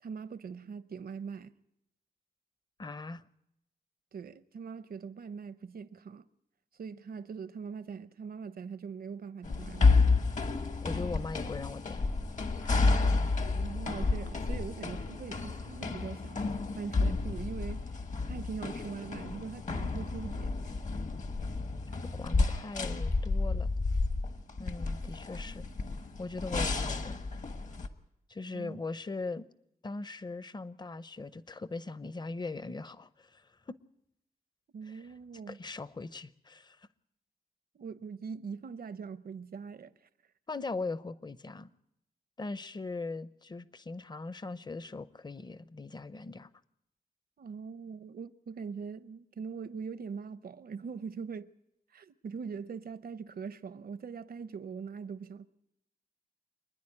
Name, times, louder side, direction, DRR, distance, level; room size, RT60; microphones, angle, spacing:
voice 1, 0.0-1.5 4.1-6.3 6.8-10.1 13.5-16.4 16.8-17.9 18.2-20.6 28.5-28.8 34.7-35.6 37.7-39.9 47.4-51.5 51.9-55.5, right 6 dB, 70° right, 0.7 m, -42 dB
voice 2, 2.8-3.2 10.8-12.0 22.1-23.7 24.6-25.7 26.2-27.2 28.3-29.5 29.8-33.8 34.9-35.0 35.5-36.9 40.5-41.7 42.4-46.5, left 3 dB, 30° left, 0.7 m, -40 dB
sound 1, 9.4-27.9, left 3 dB, 50° left, 1.3 m, -31 dB
26.0 x 10.5 x 9.8 m
wide cardioid pair, 145°, 16 cm